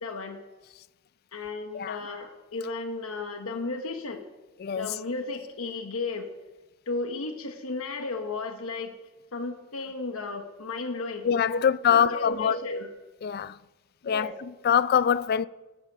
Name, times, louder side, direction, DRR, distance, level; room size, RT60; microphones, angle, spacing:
voice 1, 0.0-0.4 1.3-4.2 4.7-6.3 6.9-8.9 9.3-11.6 11.9-12.9 14.0-14.4, left 3 dB, 75° left, 1.1 m, -34 dB
voice 2, 4.6-4.9 11.2-12.6 13.2-13.5 14.0-15.5, left 8 dB, 45° left, 0.3 m, -24 dB
13.5 x 7.7 x 5.7 m
head